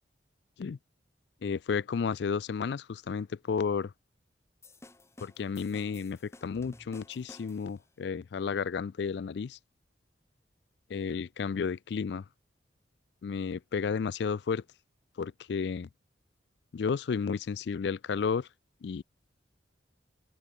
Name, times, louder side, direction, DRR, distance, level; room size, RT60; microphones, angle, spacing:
voice 1, 1.4-3.9 5.2-9.6 10.9-12.2 13.2-14.6 15.2-15.9 16.7-18.5 18.8-19.0, left 5 dB, 65° left, 0.4 m, -32 dB
sound 1, 4.6-7.8, left 2 dB, 15° left, 0.9 m, -53 dB
head